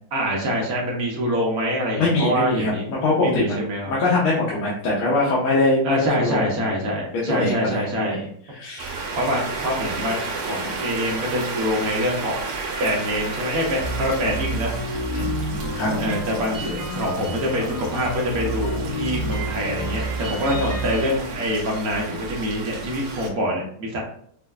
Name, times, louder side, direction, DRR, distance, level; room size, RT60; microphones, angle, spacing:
voice 1, 0.1-2.9 3.2-3.9 5.8-8.2 9.2-12.5 12.8-14.7 16.0-24.0, equal, 65° right, -2 dB, 0.9 m, -25 dB
voice 2, 2.0-3.6 3.9-6.4 7.1-8.2 8.5-9.0 15.1-16.0, left 2 dB, 80° left, -6 dB, 1.7 m, -23 dB
sound 1, 8.8-23.3, right 3 dB, 80° right, 1.6 m, -33 dB
sound 2, 13.8-21.2, right 1 dB, 40° right, 0.6 m, -29 dB
5.3 x 2.2 x 2.3 m, 0.63 s
omnidirectional pair, 2.4 m